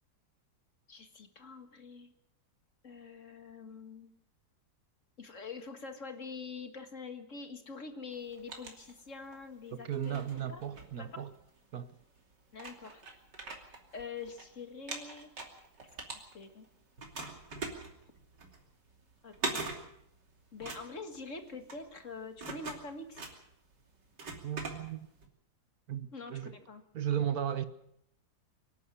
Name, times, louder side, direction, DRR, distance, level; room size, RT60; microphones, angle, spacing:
voice 1, 0.9-2.1 2.8-4.1 5.2-10.2 10.5-10.6 11.0-11.2 12.5-13.2 13.9-15.3 16.3-16.7 19.2-19.7 20.5-23.2 26.1-26.8, left 4 dB, 45° left, 2.0 m, -45 dB
sound 1, 8.1-9.4 9.9-11.6 12.2-12.3 12.5-14.4 14.7-16.7 17.0-25.3, right 3 dB, 80° right, 3.5 m, -42 dB
voice 2, 9.7-11.3 11.7-11.9 24.4-25.1 25.9-26.5 26.9-27.6, right 9 dB, 60° right, 1.5 m, -35 dB
24.5 x 11.0 x 9.7 m
omnidirectional pair, 1.9 m